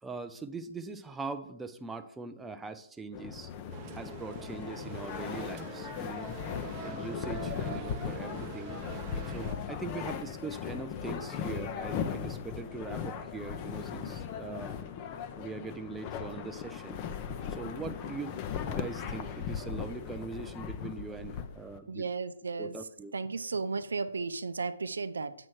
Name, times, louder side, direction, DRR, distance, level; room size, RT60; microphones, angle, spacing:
voice 1, 0.0-3.5 3.9-6.3 6.8-8.8 9.3-14.8 15.4-17.0 17.5-18.3 18.6-22.1 22.6-23.1, right 4 dB, 10° right, 8 dB, 0.4 m, -41 dB
sound 1, 3.1-21.8, left 7 dB, 30° left, 0.6 m, -38 dB
sound 2, 3.7-9.6, right 7 dB, 25° right, 0.8 m, -45 dB
voice 2, 21.9-22.8 23.1-25.3, right 4 dB, 75° right, 13 dB, 0.5 m, -34 dB
7.7 x 3.1 x 6.2 m, 0.69 s
figure-of-eight pair, 135°, 0 cm